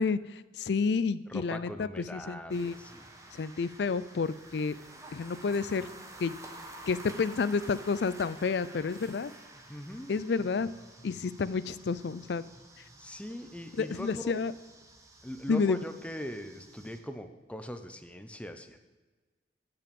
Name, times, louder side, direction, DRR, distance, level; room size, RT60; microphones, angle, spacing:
voice 1, 0.0-2.7 3.3-4.8 5.1-5.9 6.2-6.4 6.9-9.3 10.1-10.7 11.0-12.4 13.8-14.5 15.5-15.8, left 4 dB, 65° left, 17 dB, 0.4 m, -30 dB
voice 2, 1.3-3.0 9.7-10.1 13.0-14.4 15.2-18.8, left 1 dB, 5° left, 8 dB, 0.7 m, -41 dB
sound 1, 2.5-17.0, right 1 dB, 15° right, 1.2 m, -51 dB
15.5 x 5.9 x 5.2 m, 1.2 s
head